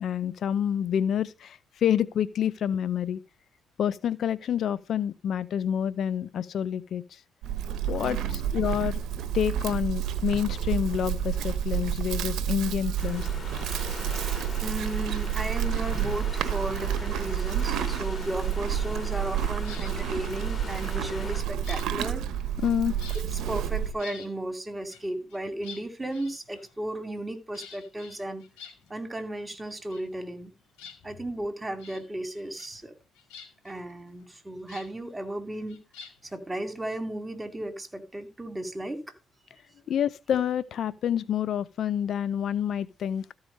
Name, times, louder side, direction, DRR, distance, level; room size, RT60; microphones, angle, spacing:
voice 1, 0.0-3.2 3.8-7.2 7.9-9.0 9.3-13.3 22.6-22.9 39.9-43.2, left 9 dB, 65° left, 0.6 m, -28 dB
Livestock farm animals working animals, 7.4-23.9, right 9 dB, 75° right, 1.0 m, -30 dB
voice 2, 8.0-8.4 14.6-22.2 23.1-28.4 28.9-30.5 31.0-32.9 33.6-35.8 36.2-39.0, right 1 dB, 20° right, 2.5 m, -35 dB
sound 1, 13.0-21.4, left 2 dB, 40° left, 5.1 m, -41 dB
sound 2, 19.6-20.0 20.9-22.7 23.0-23.4 23.8-24.3 24.9-26.9 27.5-29.2 29.5-30.5 30.7-31.4 31.8-32.0 32.3-32.9 33.1-34.9 35.7-36.4, left 6 dB, 90° left, 2.1 m, -48 dB
13.5 x 4.8 x 5.4 m
supercardioid pair, 65°, 0 cm